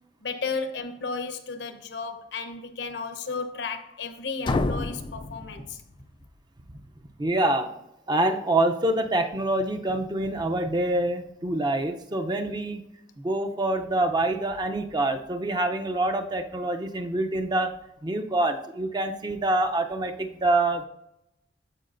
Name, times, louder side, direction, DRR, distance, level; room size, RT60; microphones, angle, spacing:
voice 1, 0.2-5.8, left 4 dB, 80° left, 0.9 m, -34 dB
sound 1, 4.4-6.3, left 2 dB, 25° left, 0.3 m, -30 dB
voice 2, 7.2-7.7 8.1-12.8 13.2-17.7 18.0-20.9, right 2 dB, 25° right, 0.6 m, -26 dB
14.0 x 4.9 x 2.6 m
head